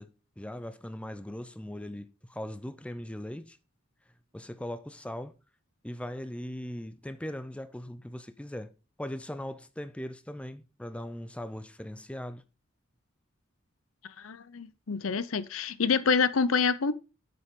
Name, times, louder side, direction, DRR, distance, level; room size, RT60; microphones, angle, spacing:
voice 1, 0.0-3.6 4.3-5.3 5.8-8.7 9.0-12.4, left 1 dB, 5° left, 0.5 m, -39 dB
voice 2, 14.2-16.9, left 5 dB, 80° left, 0.7 m, -27 dB
8.9 x 6.8 x 3.7 m
head